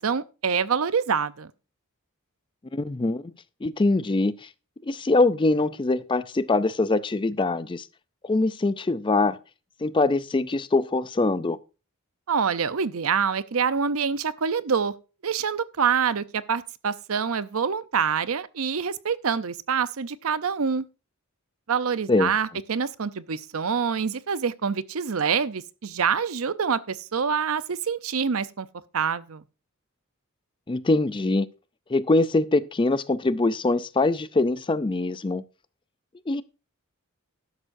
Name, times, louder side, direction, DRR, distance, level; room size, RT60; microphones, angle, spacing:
voice 1, 0.0-1.5 12.3-14.9 15.2-20.8 21.7-28.7 28.9-29.4, right 6 dB, 70° right, 0.6 m, -26 dB
voice 2, 2.7-3.3 3.6-4.5 4.8-7.8 8.2-9.4 9.8-11.6 22.1-22.3 30.7-31.5 31.9-35.4 36.3-36.4, left 2 dB, 20° left, 0.4 m, -23 dB
12.5 x 11.0 x 2.6 m
head